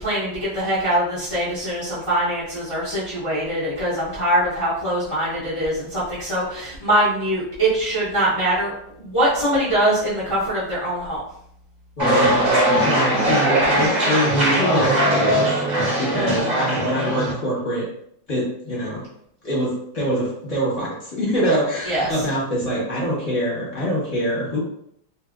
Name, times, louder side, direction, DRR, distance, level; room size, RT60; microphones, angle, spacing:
voice 1, 0.0-8.7 9.0-11.2 16.1-16.3 21.9-22.1, right 1 dB, 45° left, -10 dB, 0.4 m, -23 dB
voice 2, 12.0-12.3 12.8-15.5 16.0-17.8 18.3-19.0 19.4-24.6, equal, 25° left, -6 dB, 0.9 m, -24 dB
sound 1, 12.0-17.3, right 1 dB, 40° right, 0.7 m, -20 dB
2.8 x 2.7 x 2.4 m, 0.70 s
omnidirectional pair, 2.0 m